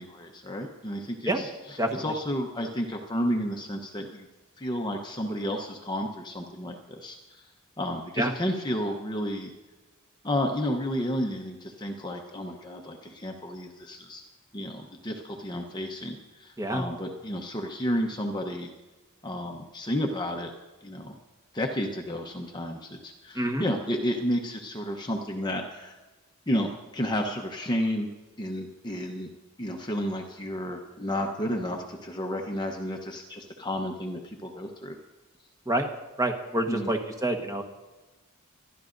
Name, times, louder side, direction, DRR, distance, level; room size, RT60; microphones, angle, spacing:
voice 1, 0.0-4.3 4.6-7.5 7.8-9.5 10.2-14.2 14.5-18.7 19.2-20.5 20.8-21.2 21.5-26.0 26.5-28.1 28.4-29.3 29.6-35.0 36.7-36.9, equal, 20° left, 2 dB, 0.9 m, -31 dB
voice 2, 23.3-23.7 35.7-35.9 36.2-37.6, right 1 dB, 15° right, 3 dB, 1.2 m, -27 dB
25.0 x 12.0 x 2.6 m, 1.1 s
head